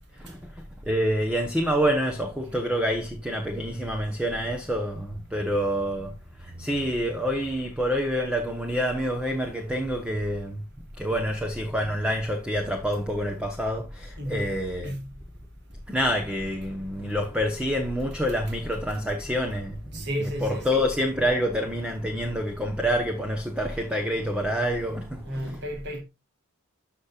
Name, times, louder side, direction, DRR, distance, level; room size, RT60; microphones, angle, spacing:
voice 1, 0.1-10.6 11.0-14.9 15.9-25.6, equal, 5° right, 1.0 m, -27 dB
voice 2, 14.2-14.5 14.8-15.1 19.9-20.8 25.2-26.0, equal, 50° right, 2.5 m, -32 dB
13.5 x 5.8 x 2.4 m
head